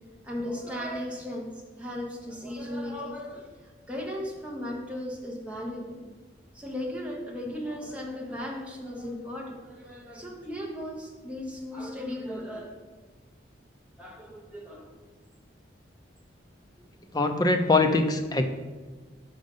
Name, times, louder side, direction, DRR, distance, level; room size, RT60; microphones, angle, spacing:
voice 1, 0.2-1.5 1.8-6.0 6.5-12.7 14.0-14.9, left 1 dB, 5° right, -2 dB, 1.0 m, -36 dB
voice 2, 17.1-18.4, left 3 dB, 20° left, 5 dB, 0.5 m, -22 dB
5.3 x 5.1 x 5.3 m, 1.3 s
head